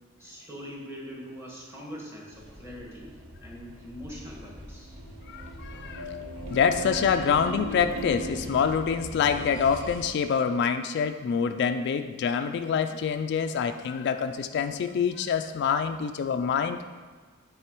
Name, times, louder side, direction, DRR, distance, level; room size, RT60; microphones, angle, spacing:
voice 1, 0.2-3.1 3.4-5.0, equal, 15° right, -3 dB, 1.4 m, -42 dB
sound 1, 2.3-10.0, left 1 dB, 55° right, 1.2 m, -43 dB
sound 2, 4.7-10.1, right 2 dB, 80° right, 0.8 m, -40 dB
voice 2, 5.3-6.1 6.5-16.8, left 6 dB, 55° left, 8 dB, 0.3 m, -26 dB
8.8 x 3.9 x 4.5 m, 1.5 s
head